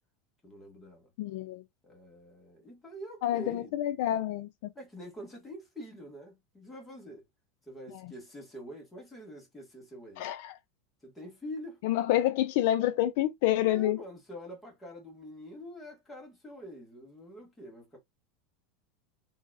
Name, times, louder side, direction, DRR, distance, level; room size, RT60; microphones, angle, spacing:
voice 1, 0.4-1.1 1.8-4.0 4.7-7.2 7.7-10.3 11.0-11.8 13.7-18.0, equal, 10° left, 1.6 m, -46 dB
voice 2, 1.2-1.6 3.2-4.5 8.0-8.1 10.2-10.6 11.8-14.0, left 13 dB, 60° left, 0.4 m, -28 dB
3.9 x 3.9 x 2.4 m
supercardioid pair, 165°, 0 cm